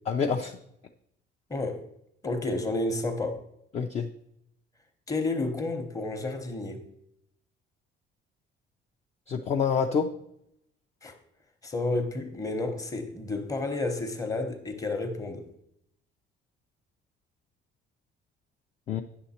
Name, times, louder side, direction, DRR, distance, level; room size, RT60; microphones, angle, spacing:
voice 1, 0.1-0.6 3.7-4.1 9.3-10.1 18.9-19.0, left 6 dB, 35° left, 5 dB, 0.4 m, -27 dB
voice 2, 1.5-1.8 2.2-3.4 5.1-6.8 11.0-11.1 11.6-15.5, left 2 dB, 15° left, 6 dB, 0.9 m, -31 dB
9.0 x 6.5 x 4.2 m, 0.77 s
cardioid pair, 175°, 20 cm